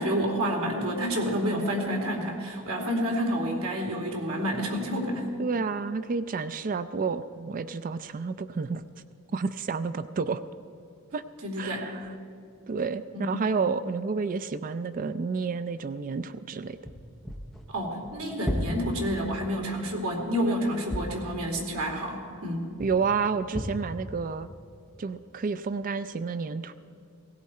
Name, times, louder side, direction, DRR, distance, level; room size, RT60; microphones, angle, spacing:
voice 1, 0.0-5.2 11.4-11.9 13.1-13.4 17.7-22.6, equal, 75° right, 0 dB, 2.7 m, -29 dB
voice 2, 5.4-8.8 9.3-10.4 11.1-11.2 11.6-12.1 12.7-16.8 22.8-24.5 25.0-26.7, right 5 dB, 40° right, 12 dB, 0.4 m, -30 dB
sound 1, 16.7-19.5 20.0-21.7 22.8-23.2 23.5-24.2, equal, ahead, 0.8 m, -35 dB
17.5 x 16.5 x 4.3 m, 2.6 s
head